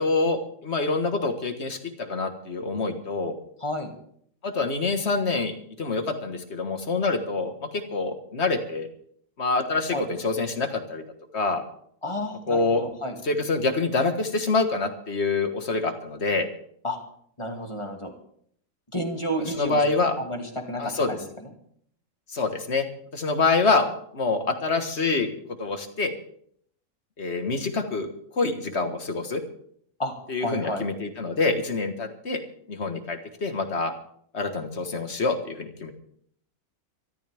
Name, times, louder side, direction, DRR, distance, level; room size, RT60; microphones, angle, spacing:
voice 1, 0.0-3.3 4.4-5.5 5.8-8.9 9.4-11.0 11.3-11.6 12.5-12.8 13.2-16.5 19.6-20.1 20.8-21.1 22.3-22.8 23.1-23.9 24.1-25.3 25.6-26.1 27.2-28.1 28.4-29.4 30.3-32.4 32.7-33.9 34.3-35.9, left 3 dB, 45° left, 7 dB, 1.7 m, -26 dB
voice 2, 3.6-3.9 9.9-10.1 12.0-13.2 16.8-17.0 17.4-18.1 18.9-19.8 20.2-21.5 30.0-30.1 30.4-30.8, equal, 20° left, 3 dB, 2.3 m, -31 dB
24.0 x 13.0 x 3.5 m, 0.65 s
omnidirectional pair, 1.6 m